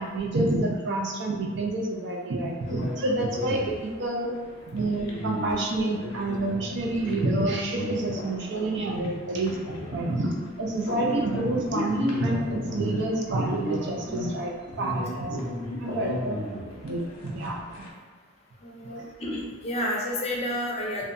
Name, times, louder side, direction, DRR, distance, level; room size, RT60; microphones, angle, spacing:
voice 1, 0.0-4.3 4.7-15.4 15.8-16.4 16.8-17.7, right 2 dB, 60° right, 0 dB, 0.4 m, -28 dB
sound 1, 2.6-17.9, left 1 dB, 80° left, 0.5 m, -36 dB
voice 2, 18.6-21.0, left 1 dB, 30° left, -3 dB, 0.5 m, -30 dB
2.7 x 2.1 x 2.5 m, 1.4 s
head